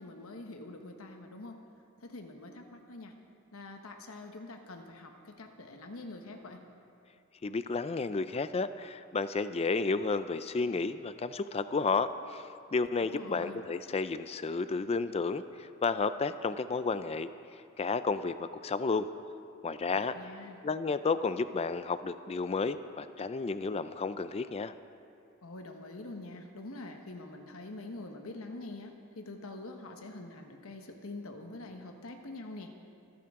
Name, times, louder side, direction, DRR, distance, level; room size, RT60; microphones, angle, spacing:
voice 1, 0.0-1.6 2.0-3.1 3.5-6.6 13.0-13.6 19.9-20.6 25.4-32.7, left 2 dB, 80° left, 4 dB, 1.2 m, -45 dB
voice 2, 7.4-17.3 17.8-19.1 19.6-20.1 20.6-24.7, left 4 dB, 30° left, 12 dB, 0.4 m, -32 dB
26.0 x 10.5 x 3.7 m, 2.5 s
head